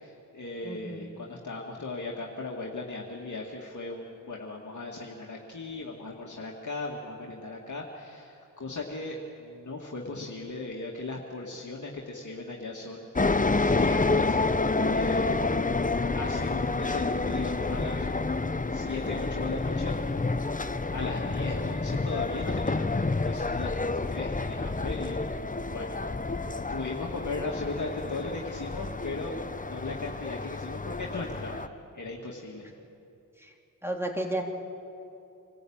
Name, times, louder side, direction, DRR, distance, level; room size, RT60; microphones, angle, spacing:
voice 1, 0.0-13.1 13.6-14.6 14.9-15.5 16.1-18.1 18.7-20.0 20.9-25.2 25.7-26.0 26.7-31.6 31.9-32.7, left 3 dB, 55° left, -2 dB, 2.2 m, -37 dB
voice 2, 0.6-1.1 15.2-15.4 33.4-33.5 33.8-34.4, right 1 dB, 5° right, 1 dB, 3.5 m, -33 dB
sound 1, 13.2-31.7, left 3 dB, 20° left, 0.9 m, -29 dB
26.0 x 14.0 x 8.9 m, 2.8 s
cardioid pair, 40°, 36 cm